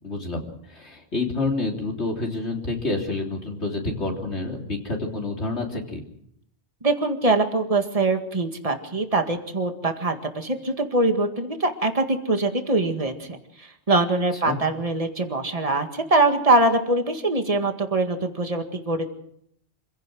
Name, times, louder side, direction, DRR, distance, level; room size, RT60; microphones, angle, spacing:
voice 1, 0.0-6.0 14.4-14.6, left 2 dB, 80° left, 0 dB, 3.7 m, -28 dB
voice 2, 6.8-19.1, right 2 dB, 35° right, 5 dB, 2.0 m, -23 dB
27.0 x 16.5 x 6.3 m, 0.71 s
omnidirectional pair, 1.1 m